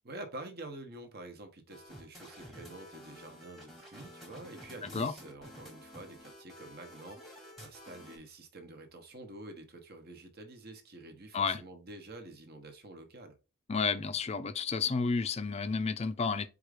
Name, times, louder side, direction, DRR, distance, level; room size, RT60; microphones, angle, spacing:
voice 1, 0.0-13.4, right 2 dB, 45° right, 0.9 m, -48 dB
sound 1, 1.7-8.2, equal, ahead, 1.1 m, -51 dB
voice 2, 4.8-5.1 11.3-11.6 13.7-16.5, left 5 dB, 30° left, 0.4 m, -31 dB
4.5 x 2.4 x 4.8 m
head